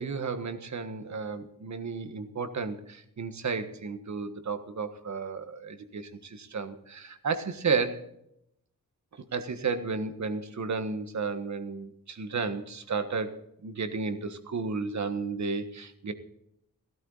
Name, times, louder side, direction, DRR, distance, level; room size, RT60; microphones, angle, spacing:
voice 1, 0.0-8.0 9.3-16.1, right 4 dB, 55° right, 9 dB, 1.5 m, -33 dB
17.0 x 12.5 x 4.0 m, 0.77 s
wide cardioid pair, 125°, 34 cm